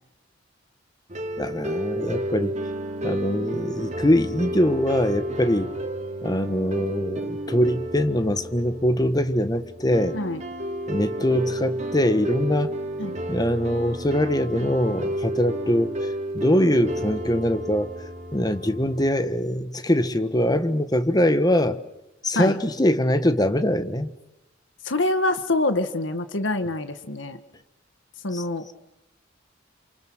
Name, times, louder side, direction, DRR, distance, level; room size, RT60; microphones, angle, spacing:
sound 1, 1.1-19.1, right 1 dB, 40° right, 3.0 m, -31 dB
voice 1, 1.4-2.6 3.0-5.7 6.2-10.2 10.9-12.7 13.3-17.9 18.3-21.8 22.2-24.1 28.3-28.4, left 1 dB, 20° left, 11 dB, 1.5 m, -23 dB
voice 2, 24.8-27.4 28.2-28.7, left 2 dB, 70° left, 10 dB, 1.5 m, -25 dB
29.0 x 27.5 x 6.3 m, 0.90 s
head